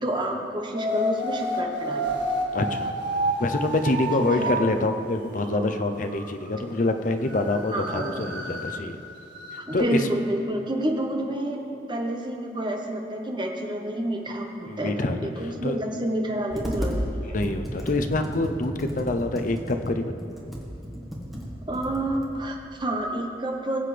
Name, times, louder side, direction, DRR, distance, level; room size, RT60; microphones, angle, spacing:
voice 1, 0.0-2.2 4.4-4.7 7.7-8.3 9.7-11.6 11.9-17.3 21.7-23.8, right 1 dB, 25° right, 1 dB, 1.0 m, -29 dB
sound 1, 0.7-4.7 5.4-6.6 6.9-7.0 7.2-8.8 9.2-9.8, right 1 dB, 80° right, 1.6 m, -30 dB
voice 2, 2.5-2.9 3.4-9.0 9.7-10.1 14.7-15.2 15.6-15.8 17.2-20.1, left 2 dB, 45° left, 7 dB, 0.6 m, -26 dB
Computer keyboard, 16.5-17.0 17.4-22.3, equal, ahead, 1.3 m, -34 dB
19.5 x 7.7 x 3.4 m, 2.8 s
head